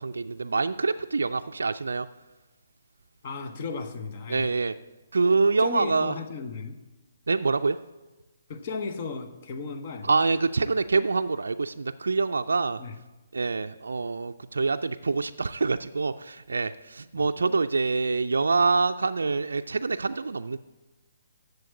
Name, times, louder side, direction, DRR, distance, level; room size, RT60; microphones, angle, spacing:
voice 1, 0.0-2.1 4.3-4.7 5.1-6.2 7.3-7.8 10.0-12.8 13.3-20.6, right 4 dB, 75° right, 8 dB, 0.4 m, -25 dB
voice 2, 3.2-4.5 5.6-6.8 8.5-10.1 12.8-13.0 17.1-17.3, left 5 dB, 40° left, 8 dB, 1.0 m, -35 dB
7.7 x 6.9 x 8.2 m, 1.1 s
figure-of-eight pair, 135°, 0 cm